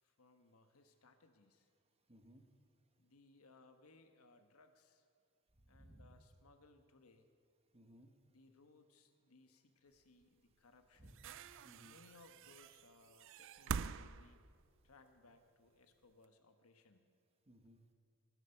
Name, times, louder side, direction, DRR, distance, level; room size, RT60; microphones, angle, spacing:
voice 1, 0.0-1.7 3.0-5.0 5.7-7.3 8.3-11.3 11.8-14.5 14.8-17.1, left 3 dB, 85° left, 7 dB, 1.3 m, -66 dB
voice 2, 2.1-2.4 5.7-6.2 7.7-8.1 11.0-11.1 11.6-12.0 17.5-17.8, equal, 30° right, 5 dB, 1.3 m, -61 dB
sound 1, 10.2-10.3 11.0-15.3 16.2-16.3, right 6 dB, 60° right, 0.4 m, -46 dB
19.0 x 12.5 x 5.8 m, 2.2 s
head